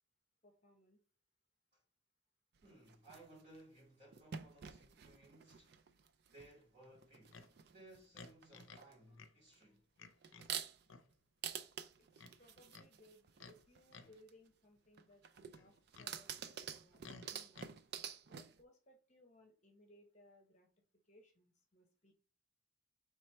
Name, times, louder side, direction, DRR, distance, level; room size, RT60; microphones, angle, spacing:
voice 1, 0.4-1.0 12.0-12.1 12.4-17.7 18.3-20.7 20.9-22.1, left 1 dB, 35° left, 0.9 m, -66 dB
voice 2, 2.6-5.8 6.3-9.8, right 1 dB, 35° right, 2.4 m, -61 dB
sound 1, 2.6-3.6 4.1-6.6 6.8-8.0 8.2-8.9 9.5-9.6 10.2-10.9 11.4-14.3 15.0-18.6, right 8 dB, 55° right, 0.4 m, -48 dB
Livestock farm animals working animals, 7.3-7.5 8.1-8.9 9.2-9.3 10.0-10.5 10.9-11.1 12.2-12.9 13.4-13.6 13.9-14.2 15.6-16.1 17.0-17.7, left 4 dB, 80° left, 0.6 m, -56 dB
3.4 x 3.2 x 4.3 m
head